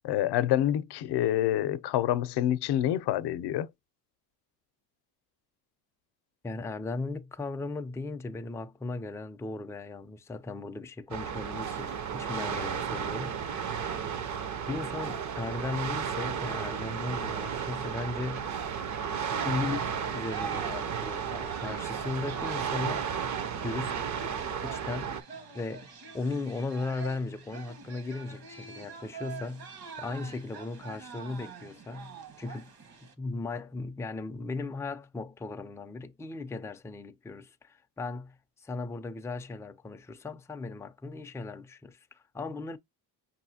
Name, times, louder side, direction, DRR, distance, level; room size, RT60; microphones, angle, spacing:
voice 1, 0.0-3.7, left 12 dB, 70° left, 0.6 m, -27 dB
voice 2, 6.4-14.0 14.7-18.5 19.4-23.1 23.6-24.1 24.6-25.2 25.5-25.9 26.1-29.7 30.0-32.7 33.0-38.4 38.6-42.8, left 3 dB, 5° left, 0.4 m, -37 dB
sound 1, 11.1-25.2, right 7 dB, 45° right, 0.6 m, -33 dB
sound 2, 19.3-33.1, right 6 dB, 60° right, 1.3 m, -45 dB
5.4 x 2.7 x 2.7 m
cardioid pair, 120°, 41 cm